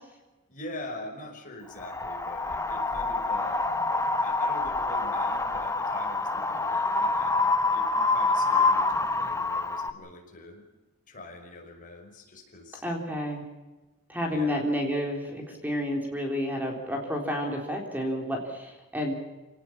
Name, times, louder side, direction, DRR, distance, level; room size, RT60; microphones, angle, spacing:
voice 1, 0.5-3.7 4.2-10.7 11.1-12.8 14.3-14.6, left 2 dB, 35° left, 2 dB, 5.5 m, -43 dB
Wind, 1.8-9.9, left 3 dB, 15° left, 1.1 m, -26 dB
voice 2, 12.8-13.4 14.1-19.1, equal, 10° right, 1 dB, 3.7 m, -30 dB
27.5 x 18.5 x 7.3 m, 1.1 s
head